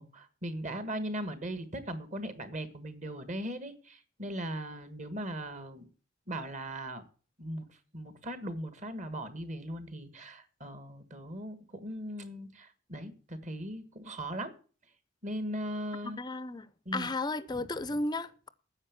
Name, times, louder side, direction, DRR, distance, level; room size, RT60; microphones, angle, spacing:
voice 1, 0.0-5.9 6.3-7.0 7.4-7.7 7.9-14.5 15.2-16.2 16.8-17.1 17.5-17.7, right 1 dB, 40° right, 1.5 m, -39 dB
voice 2, 16.0-16.7 16.9-18.5, left 2 dB, 20° left, 0.5 m, -34 dB
9.8 x 8.0 x 8.5 m
head